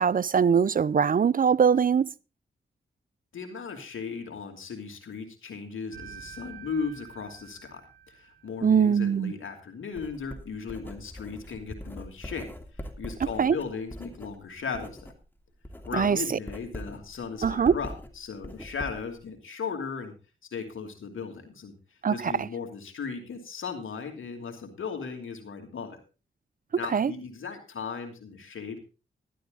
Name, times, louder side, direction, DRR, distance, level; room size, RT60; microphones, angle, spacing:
voice 1, 0.0-2.1 8.6-9.3 13.4-13.6 15.9-16.4 17.4-17.7 22.0-22.5 26.9-27.1, right 7 dB, 45° right, 0.5 m, -22 dB
voice 2, 3.3-7.8 8.1-12.5 12.8-15.0 15.8-20.1 20.5-21.7 22.1-26.0 26.7-28.8, left 5 dB, 75° left, 2.8 m, -37 dB
sound 1, 5.9-8.8, right 7 dB, 85° right, 1.9 m, -47 dB
Writing, 10.0-15.2 15.5-19.2, equal, 10° left, 2.7 m, -42 dB
13.0 x 12.0 x 3.8 m
supercardioid pair, 40°, 21 cm